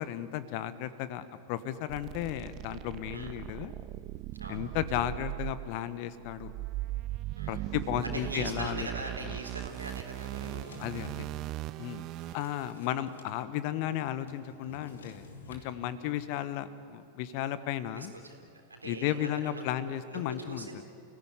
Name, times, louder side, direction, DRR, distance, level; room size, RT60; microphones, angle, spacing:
voice 1, 0.0-3.7 4.5-6.5 7.5-8.9 9.2-9.3 10.8-11.3 11.8-12.0 12.3-18.1 18.8-20.8, left 12 dB, 45° left, 14 dB, 1.2 m, -34 dB
sound 1, 1.9-12.7, right 16 dB, 40° right, 0.5 m, -39 dB
voice 2, 7.4-7.7 8.0-10.7 12.1-12.6 17.9-20.8, right 2 dB, 80° right, 3 dB, 3.8 m, -42 dB
Drawer open or close, 10.2-11.2 11.8-13.3 13.6-13.7 13.9-15.7, left 2 dB, 70° left, 2.8 m, -50 dB
30.0 x 17.0 x 9.8 m, 2.4 s
figure-of-eight pair, 90°, 0 cm